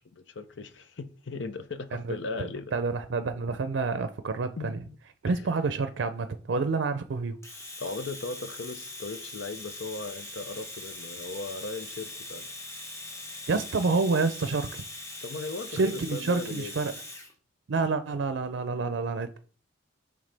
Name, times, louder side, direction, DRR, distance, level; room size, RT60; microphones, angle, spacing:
voice 1, 0.2-2.8 4.6-4.9 5.3-5.4 7.8-12.5 15.2-16.7, left 3 dB, 80° left, 0.7 m, -37 dB
voice 2, 1.9-4.8 5.2-7.4 13.5-14.9 15.7-16.9 17.7-19.4, right 4 dB, 80° right, 0.5 m, -28 dB
Domestic sounds home sounds, 7.4-17.3, left 2 dB, 15° left, 1.0 m, -41 dB
8.9 x 3.4 x 3.4 m
head